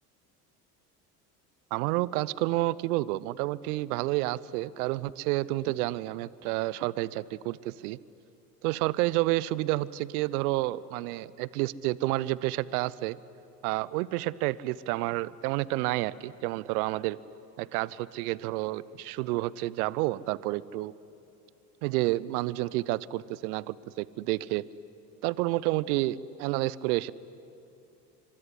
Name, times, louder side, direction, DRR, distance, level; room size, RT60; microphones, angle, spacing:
voice 1, 1.7-8.0 8.6-13.2 13.6-17.2 17.6-20.9 21.8-24.6 25.2-27.1, right 18 dB, 65° right, 21 dB, 0.8 m, -30 dB
25.0 x 22.5 x 10.0 m, 2.7 s
figure-of-eight pair, 65°, 49 cm